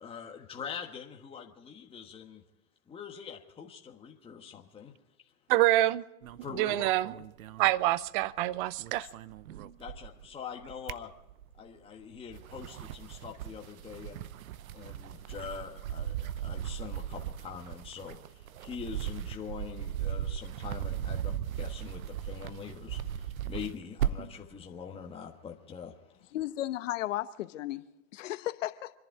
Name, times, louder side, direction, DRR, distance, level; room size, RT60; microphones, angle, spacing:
voice 1, 0.0-2.4 2.9-4.9 6.4-7.2 9.8-11.1 11.6-14.2 14.7-16.1 16.4-18.2 18.7-22.0 22.3-23.0 23.5-25.9, left 7 dB, 15° left, 1.4 m, -43 dB
voice 2, 5.5-6.0 6.6-7.1 7.6-9.1, right 16 dB, 35° right, 0.5 m, -26 dB
sound 1, 6.2-8.4 8.7-10.3 10.6-11.7 12.2-24.4, right 10 dB, 70° right, 0.9 m, -38 dB
voice 3, 26.3-27.8 28.1-28.9, left 14 dB, 60° left, 1.0 m, -34 dB
27.5 x 11.0 x 4.7 m
hypercardioid pair, 130°, 43 cm